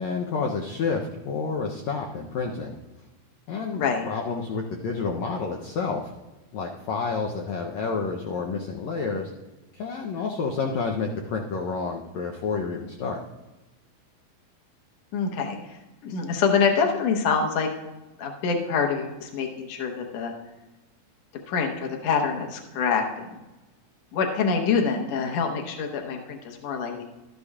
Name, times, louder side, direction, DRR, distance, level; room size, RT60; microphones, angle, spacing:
voice 1, 0.0-2.8 3.5-6.1 6.5-9.3 9.7-13.2, left 4 dB, 90° left, 0 dB, 1.5 m, -29 dB
voice 2, 3.7-4.1 15.1-17.7 18.2-20.3 21.5-23.4 24.1-27.0, left 5 dB, 65° left, 2 dB, 1.8 m, -26 dB
12.5 x 12.0 x 2.4 m, 1.1 s
omnidirectional pair, 4.2 m